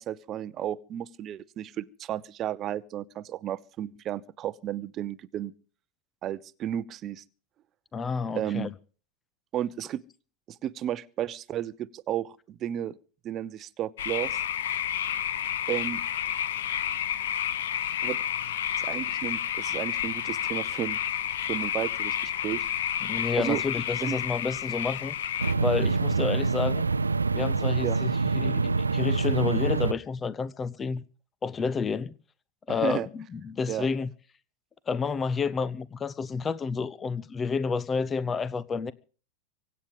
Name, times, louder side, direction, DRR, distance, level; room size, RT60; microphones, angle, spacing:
voice 1, 0.0-5.5 6.2-7.2 8.3-8.7 9.5-10.0 10.5-13.0 13.2-14.4 15.7-16.0 18.0-18.2 18.8-21.0 21.4-22.7 23.4-23.6 24.0-24.2 27.8-28.0 32.7-33.1 33.7-33.9, right 11 dB, 30° right, 0.7 m, -33 dB
voice 2, 7.9-8.7 23.0-25.1 25.6-26.9 27.3-31.0 31.4-32.1 32.7-34.1 34.9-38.9, left 5 dB, 20° left, 0.7 m, -30 dB
sound 1, 14.0-25.5, left 10 dB, 60° left, 0.9 m, -30 dB
sound 2, 25.4-29.9, right 4 dB, 80° right, 0.6 m, -26 dB
24.5 x 9.0 x 5.2 m
figure-of-eight pair, 90°, 0 cm